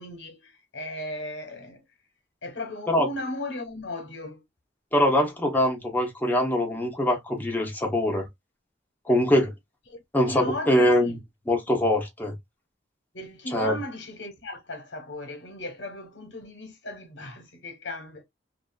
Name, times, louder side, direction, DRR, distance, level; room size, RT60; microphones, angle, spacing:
voice 1, 0.0-1.8 2.4-4.4 9.9-10.0 10.3-11.2 13.1-18.2, left 1 dB, 80° left, 1.1 m, -36 dB
voice 2, 4.9-8.2 9.1-9.5 10.1-11.2 11.5-12.4 13.5-13.7, left 1 dB, 10° left, 0.8 m, -23 dB
2.7 x 2.5 x 2.3 m
head